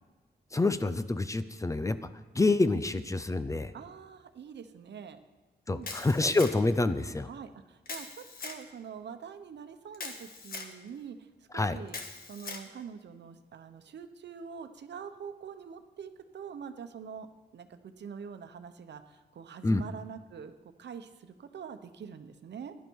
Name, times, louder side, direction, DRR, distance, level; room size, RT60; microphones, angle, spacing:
voice 1, 0.5-2.0 2.3-3.7 5.7-7.3 11.5-11.8 19.6-19.8, left 2 dB, 20° left, 12 dB, 0.5 m, -27 dB
voice 2, 3.7-5.2 5.7-5.9 7.3-12.0 12.3-17.3 17.5-22.7, right 7 dB, 80° right, 9 dB, 0.9 m, -45 dB
Camera, 5.8-6.8 7.9-8.6 9.9-10.7 11.9-12.7, left 4 dB, 55° left, 1.5 m, -41 dB
17.5 x 11.5 x 4.7 m, 1.2 s
wide cardioid pair, 160°, 18 cm